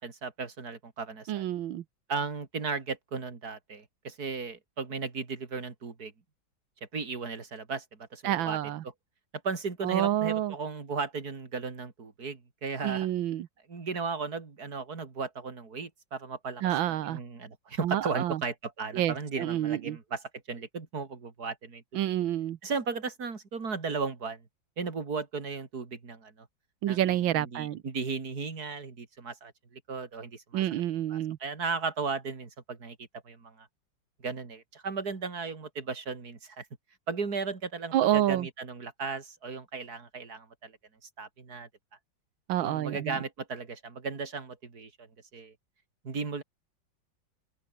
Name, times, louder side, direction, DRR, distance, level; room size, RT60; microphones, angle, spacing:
voice 1, 0.0-1.4 2.1-6.1 6.9-8.6 9.4-13.1 13.7-21.8 22.6-24.4 24.8-26.5 26.9-30.6 31.1-33.0 33.2-33.7 34.2-36.7 37.1-40.7 41.0-41.7 42.6-45.1 45.3-45.5 46.0-46.4, right 4 dB, 50° right, 3.4 m, -36 dB
voice 2, 1.3-1.8 8.2-8.8 9.8-10.5 12.8-13.5 16.6-17.2 17.8-18.4 18.9-20.0 21.9-22.6 26.8-27.8 30.5-31.4 37.9-38.5 42.5-43.2, right 12 dB, 90° right, 1.7 m, -28 dB
open air
omnidirectional pair, 2.1 m